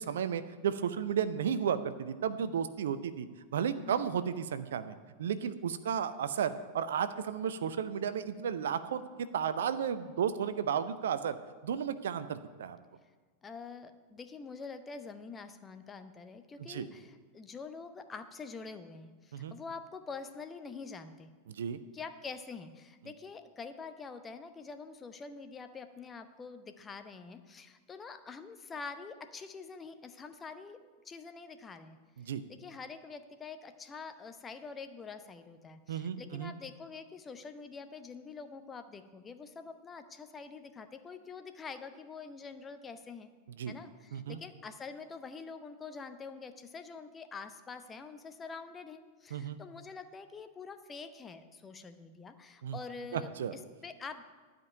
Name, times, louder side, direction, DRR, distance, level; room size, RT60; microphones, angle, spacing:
voice 1, 0.0-3.3 3.5-11.4 11.6-12.8 16.7-16.9 19.3-19.5 21.5-21.8 32.2-32.4 35.9-36.5 43.6-43.7 44.1-44.4 49.3-49.6 52.6-52.8 53.1-53.5, right 8 dB, 60° right, 12 dB, 0.6 m, -33 dB
voice 2, 13.4-21.3 21.9-32.0 32.5-43.3 43.7-54.2, left 4 dB, 20° left, 8 dB, 0.8 m, -46 dB
12.0 x 5.3 x 8.8 m, 1.4 s
figure-of-eight pair, 90°, 0 cm